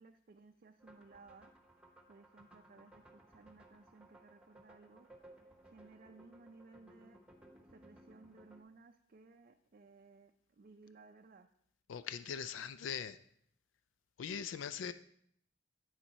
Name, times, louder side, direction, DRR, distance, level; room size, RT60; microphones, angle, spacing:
voice 1, 0.0-1.5 2.1-5.1 5.7-7.2 7.7-11.5, right 3 dB, 50° right, 4 dB, 0.4 m, -59 dB
sound 1, 0.8-8.6, right 1 dB, 5° right, 0.9 m, -61 dB
voice 2, 11.9-13.2 14.2-14.9, left 7 dB, 80° left, 13 dB, 0.4 m, -41 dB
8.9 x 7.3 x 4.2 m, 0.68 s
head